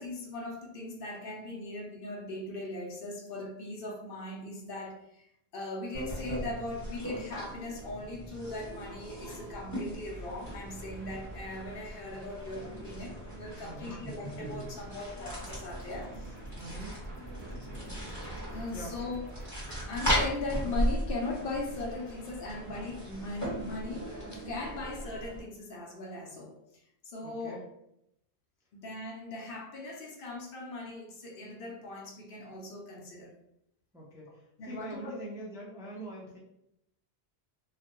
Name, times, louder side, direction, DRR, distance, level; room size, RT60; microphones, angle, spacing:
voice 1, 0.0-16.4 18.5-19.5 19.9-27.6 28.8-33.3 34.6-35.2, left 2 dB, 65° left, -1 dB, 0.7 m, -39 dB
sound 1, 5.9-25.4, equal, 15° left, 1.2 m, -38 dB
sound 2, 10.0-24.2, equal, 40° left, 1.0 m, -55 dB
voice 2, 13.6-14.0 16.6-17.0 18.7-18.9 27.2-27.6 33.9-36.4, right 1 dB, 5° right, -5 dB, 0.3 m, -43 dB
sound 3, 15.2-20.8, right 1 dB, 80° right, 0.8 m, -46 dB
2.4 x 2.1 x 2.8 m, 0.78 s
omnidirectional pair, 1.1 m